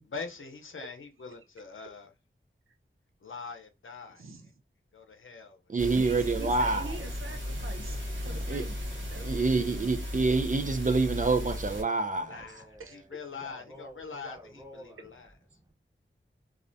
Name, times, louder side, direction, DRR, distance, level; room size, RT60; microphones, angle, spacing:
voice 1, 0.1-2.1 3.2-4.2 4.9-5.6 11.7-15.3, left 5 dB, 80° left, 0.6 m, -43 dB
voice 2, 4.2-4.5 6.0-8.8 9.1-10.0 12.8-13.0, right 3 dB, 90° right, 0.6 m, -45 dB
voice 3, 5.7-7.0 8.3-8.7 9.2-12.4, right 3 dB, 40° right, 0.4 m, -27 dB
sound 1, 5.8-11.8, left 1 dB, 65° right, 1.1 m, -36 dB
voice 4, 12.4-15.1 15.5-15.7, equal, 15° right, 0.9 m, -50 dB
2.4 x 2.1 x 2.6 m
wide cardioid pair, 55°, 21 cm